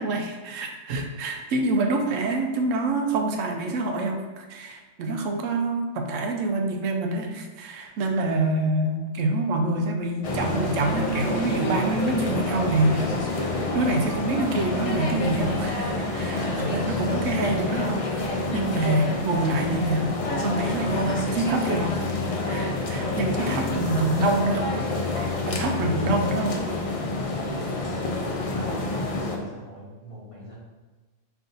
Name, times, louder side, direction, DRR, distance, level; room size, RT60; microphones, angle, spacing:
voice 1, 0.0-20.2 20.4-22.0 22.5-26.6, right 2 dB, 85° right, 3 dB, 1.0 m, -26 dB
sound 1, 10.2-29.4, left 2 dB, 55° left, 0.4 m, -28 dB
voice 2, 23.4-24.3 27.5-30.6, equal, 30° left, -6 dB, 0.9 m, -44 dB
4.6 x 2.7 x 3.9 m, 1.3 s
omnidirectional pair, 1.3 m